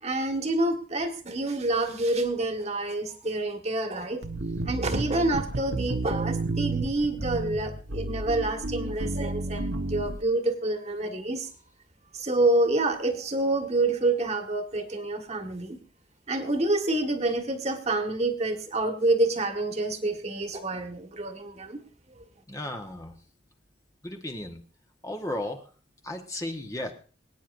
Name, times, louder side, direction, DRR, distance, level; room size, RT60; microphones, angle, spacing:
voice 1, 0.0-4.2 4.6-11.5 12.1-15.8 16.3-21.8, right 2 dB, 35° right, 6 dB, 1.6 m, -27 dB
sound 1, 4.2-10.2, right 2 dB, 80° right, 1.1 m, -31 dB
voice 2, 22.5-23.2 24.0-24.6 25.0-25.7 26.0-26.9, left 1 dB, 20° left, 3 dB, 1.2 m, -34 dB
24.5 x 9.3 x 2.6 m, 0.40 s
head